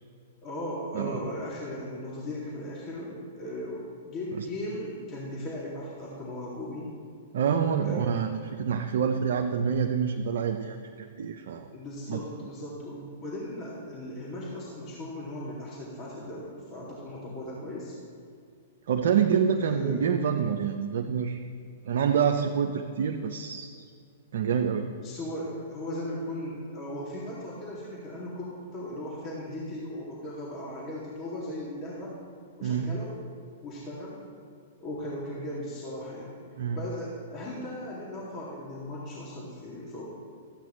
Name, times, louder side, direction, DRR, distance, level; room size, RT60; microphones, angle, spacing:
voice 1, 0.4-6.9 7.8-8.1 11.7-18.0 19.6-20.0 25.0-32.1 32.6-33.2 33.6-34.3 34.8-36.4 36.7-40.1, left 1 dB, 30° left, -6 dB, 2.3 m, -37 dB
voice 2, 0.9-1.3 4.4-4.5 7.3-11.7 12.1-12.2 18.9-21.4 21.9-23.7 24.3-24.9 32.6-32.9 36.6-36.8, right 7 dB, 70° right, 4 dB, 0.5 m, -27 dB
13.0 x 8.5 x 3.1 m, 2.2 s
hypercardioid pair, 115°, 0 cm